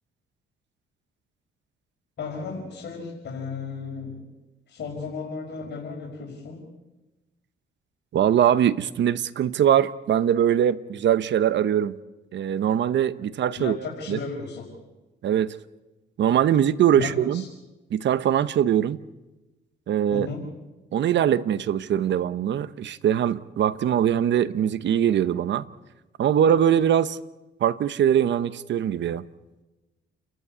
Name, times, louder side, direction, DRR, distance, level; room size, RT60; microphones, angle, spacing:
voice 1, 2.2-4.2 4.7-6.6 13.6-14.7 16.9-17.5 20.1-20.4, left 4 dB, 60° left, -2 dB, 5.4 m, -34 dB
voice 2, 8.1-12.0 12.3-13.8 14.1-14.2 15.2-15.6 16.2-17.4 17.9-19.0 19.9-20.3 20.9-25.6 26.2-27.2 27.6-29.2, right 9 dB, 65° right, 15 dB, 1.0 m, -22 dB
29.5 x 14.0 x 8.3 m, 1.1 s
cardioid pair, 90°, 20 cm